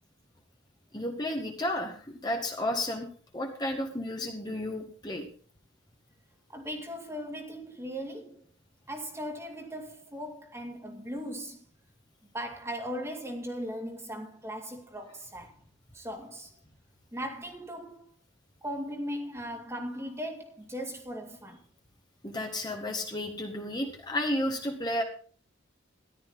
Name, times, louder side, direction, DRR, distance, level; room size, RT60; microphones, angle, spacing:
voice 1, 0.9-2.0 2.2-3.1 3.3-5.3 22.2-25.0, left 1 dB, 20° left, 1.9 m, -32 dB
voice 2, 6.5-8.4 8.9-11.6 12.3-15.5 15.9-16.5 17.1-18.1 18.6-21.6, equal, 15° right, 2.2 m, -38 dB
14.0 x 12.0 x 4.0 m
head